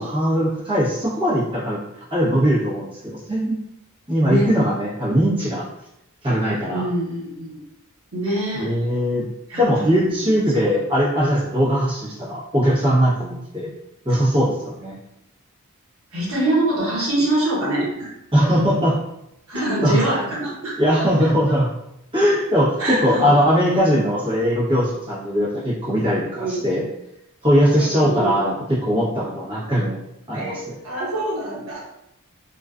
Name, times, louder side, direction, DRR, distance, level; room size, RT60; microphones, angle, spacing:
voice 1, 0.0-3.6 4.1-5.6 6.2-6.9 8.5-9.2 9.6-13.7 14.0-15.0 18.3-19.0 19.8-20.0 20.8-21.7 22.1-26.9 27.4-30.0 30.3-30.7, equal, 25° right, -8 dB, 0.9 m, -20 dB
voice 2, 4.2-4.5 6.7-7.6 8.1-8.7 9.5-10.8 14.1-14.2 16.1-18.1 19.5-21.3 22.8-23.3 26.4-26.6 27.7-28.4 30.3-31.8, right 1 dB, 65° right, -7 dB, 1.1 m, -25 dB
2.4 x 2.3 x 2.3 m, 0.83 s
head